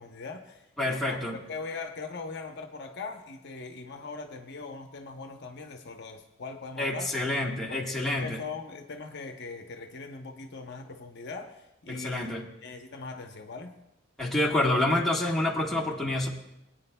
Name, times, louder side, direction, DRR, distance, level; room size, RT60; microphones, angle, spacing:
voice 1, 0.0-7.1 7.7-13.7, left 4 dB, 55° left, 4 dB, 0.8 m, -40 dB
voice 2, 0.8-1.4 6.8-8.4 11.9-12.4 14.2-16.3, left 1 dB, ahead, -3 dB, 1.4 m, -27 dB
22.0 x 9.3 x 2.3 m, 0.86 s
head